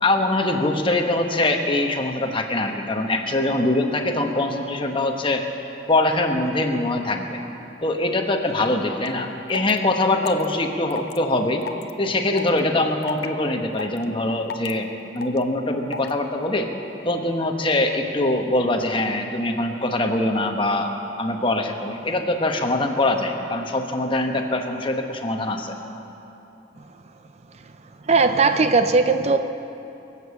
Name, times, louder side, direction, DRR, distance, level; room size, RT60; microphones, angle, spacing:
voice 1, 0.0-5.4 5.9-7.4 7.8-11.6 12.0-16.7 17.0-25.7, left 2 dB, 30° left, 4 dB, 1.1 m, -23 dB
sound 1, 9.0-9.1 9.5-9.8 10.2-10.5 10.9-11.2 11.6-11.9 12.4-12.6 13.0-13.3 13.8-14.0 14.5-14.7 15.2-15.4 15.9-16.1, left 4 dB, 60° left, 0.6 m, -32 dB
voice 2, 28.0-29.4, right 4 dB, 35° right, 8 dB, 0.5 m, -18 dB
22.5 x 8.5 x 7.1 m, 2.9 s
head